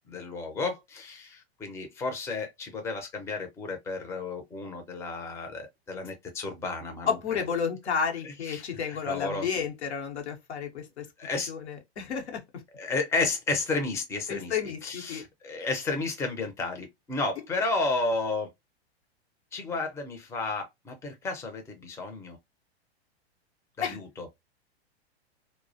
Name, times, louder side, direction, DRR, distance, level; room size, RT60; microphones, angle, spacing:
voice 1, 0.1-7.4 8.4-9.5 11.2-11.5 12.7-18.5 19.5-22.4 23.8-24.3, left 3 dB, 10° left, 0.4 m, -32 dB
voice 2, 7.1-11.1 11.5-12.4 14.3-15.2 23.8-24.0, left 6 dB, 90° left, 0.9 m, -31 dB
2.3 x 2.0 x 2.6 m
hypercardioid pair, 110°, 32 cm